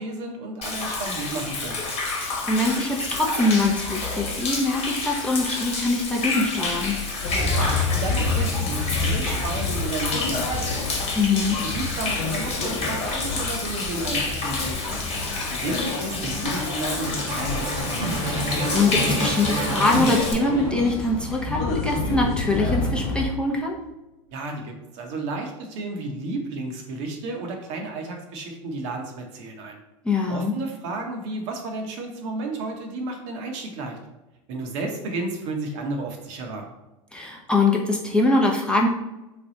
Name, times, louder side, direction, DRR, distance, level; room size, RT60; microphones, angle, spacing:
voice 1, 0.0-1.8 7.6-10.8 11.3-15.1 15.5-18.2 24.3-29.8 30.3-34.0 34.5-36.6, right 2 dB, 65° right, 2 dB, 0.8 m, -32 dB
Human voice / Rain / Stream, 0.6-20.3, left 3 dB, 35° left, 1.1 m, -29 dB
voice 2, 2.2-7.0 11.2-11.6 18.7-23.8 30.0-30.5 37.1-38.9, left 2 dB, 5° left, -1 dB, 0.6 m, -23 dB
sound 1, 7.2-23.3, left 3 dB, 60° left, 0.7 m, -29 dB
sound 2, 13.2-21.2 22.0-22.8, right 1 dB, 85° right, 1.5 m, -31 dB
3.3 x 2.3 x 3.9 m, 1.0 s
hypercardioid pair, 90°, 17 cm